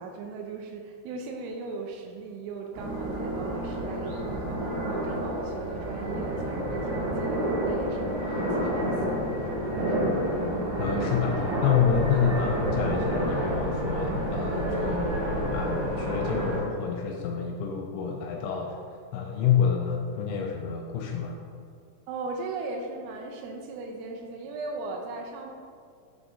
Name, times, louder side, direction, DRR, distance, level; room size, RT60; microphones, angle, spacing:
voice 1, 0.0-10.1 22.1-25.5, right 4 dB, 90° right, 2 dB, 3.3 m, -38 dB
sound 1, 2.7-16.6, right 1 dB, 60° right, 2.6 m, -29 dB
voice 2, 10.8-18.8 19.1-21.4, left 7 dB, 85° left, 1 dB, 2.9 m, -28 dB
9.6 x 4.8 x 2.6 m, 2.2 s
omnidirectional pair, 6.0 m